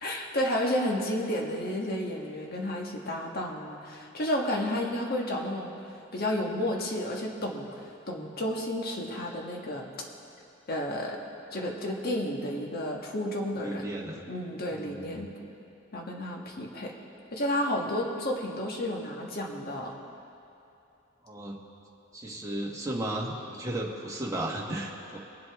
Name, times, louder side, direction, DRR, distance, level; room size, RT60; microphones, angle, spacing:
voice 1, 0.0-5.7 6.1-9.9 10.7-11.2 11.5-13.9 14.3-15.3 15.9-16.9 17.3-19.9, left 1 dB, 50° left, 0 dB, 1.4 m, -31 dB
voice 2, 13.6-14.2 14.7-15.3 21.2-21.6 22.1-25.2, right 1 dB, 15° right, -3 dB, 1.3 m, -34 dB
22.0 x 7.9 x 3.5 m, 2.7 s
head